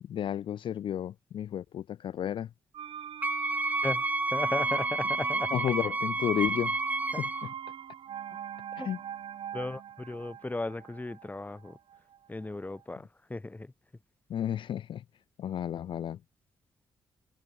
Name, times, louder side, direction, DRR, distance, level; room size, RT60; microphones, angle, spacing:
voice 1, 0.0-2.5 5.5-6.8 7.2-7.5 8.8-9.0 14.3-15.0 15.4-16.2, left 10 dB, 60° left, 0.4 m, -32 dB
sound 1, 2.7-12.5 12.8-12.9, right 9 dB, 70° right, 1.1 m, -41 dB
Wind instrument woodwind instrument, 3.2-7.5, right 2 dB, 15° right, 1.2 m, -30 dB
voice 2, 3.8-5.6 8.8-8.9 9.5-11.8 12.3-13.7, left 2 dB, 15° left, 2.8 m, -36 dB
open air
cardioid pair, 90°, 9 cm